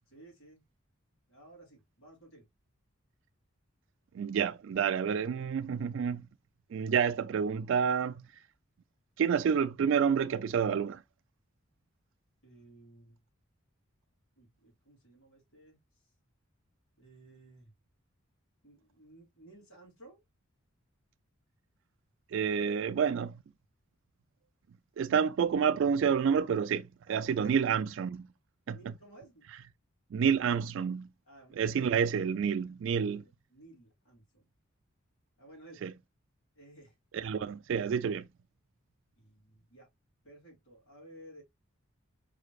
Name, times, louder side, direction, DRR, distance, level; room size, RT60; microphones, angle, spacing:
voice 1, 0.1-0.6 1.3-2.4 12.4-13.2 14.4-15.8 17.0-17.7 18.6-20.2 27.1-27.6 28.7-29.4 31.2-31.8 33.0-34.4 35.4-35.8 36.5-36.9 39.2-39.9 40.2-41.4, right 1 dB, 80° left, 3.1 m, -56 dB
voice 2, 4.1-6.2 6.7-8.1 9.2-11.0 22.3-23.3 25.0-28.3 28.7-28.9 30.1-31.1 31.6-33.2 35.8-35.9 37.1-38.3, right 7 dB, 60° right, 0.3 m, -29 dB
4.7 x 3.2 x 2.3 m
head